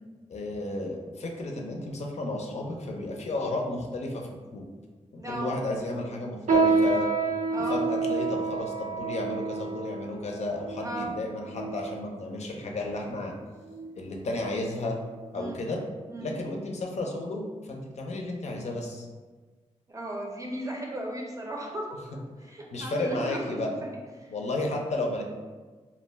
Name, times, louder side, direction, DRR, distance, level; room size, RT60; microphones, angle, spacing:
voice 1, 0.3-4.6 5.1-7.1 7.7-13.3 14.0-15.0 15.3-15.8 16.2-19.1 22.7-23.8 24.3-25.2, left 2 dB, 65° left, 0 dB, 0.4 m, -32 dB
voice 2, 5.2-5.5 7.5-7.8 10.8-11.1 15.3-15.6 16.1-16.3 19.9-21.9 22.4-23.6 24.2-24.3, right 1 dB, 25° right, -1 dB, 0.5 m, -36 dB
sound 1, 6.5-12.1 12.8-13.0 13.7-14.0 14.4-14.5 15.3-15.4, right 4 dB, 85° right, 0.5 m, -28 dB
2.3 x 2.1 x 3.2 m, 1.4 s
cardioid pair, 75°, 12 cm